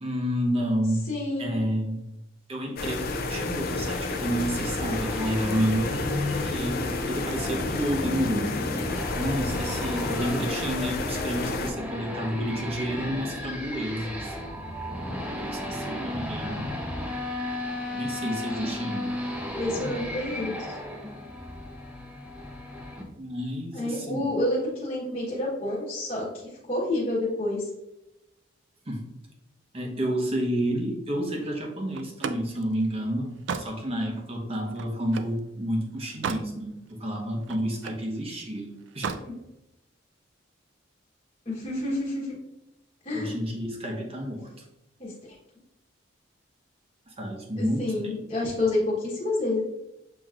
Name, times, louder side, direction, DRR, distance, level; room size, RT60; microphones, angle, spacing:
voice 1, 0.0-1.1 1.4-2.0 2.5-6.0 6.4-8.5 9.1-14.3 15.4-16.7 17.9-19.2 23.2-24.2 28.9-29.1 29.7-39.1 43.1-44.5 47.1-48.2, equal, 30° right, 1 dB, 0.9 m, -30 dB
voice 2, 1.1-1.6 19.5-20.8 23.7-26.3 26.7-27.7 39.2-39.3 41.4-42.3 43.0-43.3 45.0-45.1 47.6-49.6, left 1 dB, 30° left, -7 dB, 1.3 m, -29 dB
sound 1, 2.8-11.7, left 3 dB, 50° left, 0.4 m, -31 dB
sound 2, 4.6-23.0, left 1 dB, 5° right, 0.7 m, -34 dB
Slam, 31.9-35.4 35.9-36.5 36.9-38.1 38.9-39.3, right 5 dB, 65° right, 0.3 m, -35 dB
7.2 x 3.0 x 2.4 m, 0.89 s
head